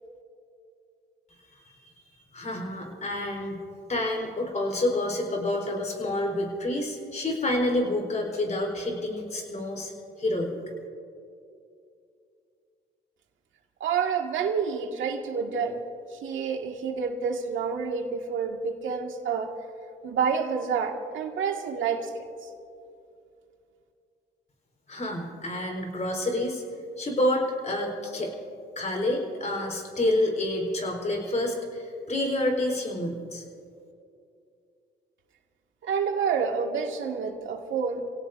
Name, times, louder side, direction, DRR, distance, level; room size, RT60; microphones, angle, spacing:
voice 1, 2.3-3.6 3.9-9.9 10.2-10.5 24.9-26.6 27.0-28.3 28.8-33.4, left 1 dB, 35° left, 2 dB, 4.1 m, -28 dB
voice 2, 13.8-15.8 16.1-19.5 20.0-22.5 35.8-38.0, right 6 dB, 75° right, 2 dB, 2.0 m, -28 dB
29.5 x 17.5 x 2.7 m, 2.6 s
cardioid pair, 90°, 20 cm